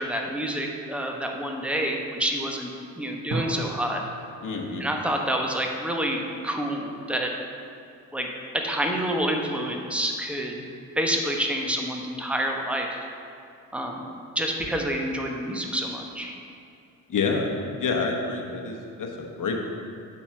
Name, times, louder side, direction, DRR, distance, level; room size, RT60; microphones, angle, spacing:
voice 1, 0.0-4.0 4.8-7.3 8.1-10.7 11.0-13.0 13.7-16.3, equal, 5° right, 1 dB, 1.0 m, -28 dB
sound 1, 3.3-6.1, right 2 dB, 40° right, 1.1 m, -36 dB
voice 2, 4.4-4.8 17.1-17.5 17.8-19.6, left 4 dB, 40° left, 1 dB, 1.3 m, -28 dB
7.3 x 4.4 x 5.8 m, 2.5 s
figure-of-eight pair, 45°, 47 cm